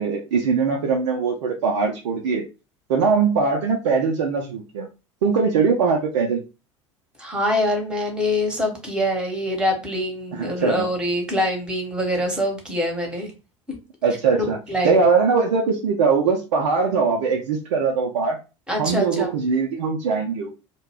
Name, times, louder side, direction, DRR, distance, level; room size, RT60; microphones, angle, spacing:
voice 1, 0.0-2.4 2.9-4.9 5.2-6.4 10.3-10.8 14.0-14.6 14.8-18.4 18.8-20.5, right 5 dB, 65° right, -1 dB, 0.5 m, -21 dB
voice 2, 7.2-13.3 14.3-15.0 18.7-19.3, left 1 dB, 5° right, 2 dB, 1.0 m, -24 dB
2.3 x 2.2 x 3.4 m, 0.30 s
figure-of-eight pair, 70°, 16 cm